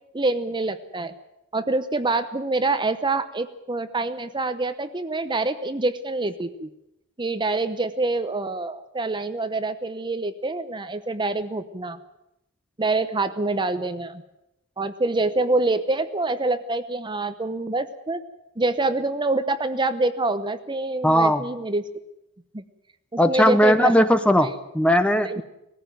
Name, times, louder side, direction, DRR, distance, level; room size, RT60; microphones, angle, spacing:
voice 1, 0.1-1.1 1.5-6.7 7.2-12.0 12.8-14.2 14.8-18.2 18.6-21.9 22.5-22.6 23.1-24.0 24.4-24.5 25.2-25.4, right 2 dB, 20° right, 11 dB, 0.9 m, -26 dB
voice 2, 21.0-21.4 23.2-25.4, equal, 5° left, 10 dB, 1.0 m, -18 dB
20.0 x 15.0 x 9.3 m, 0.87 s
head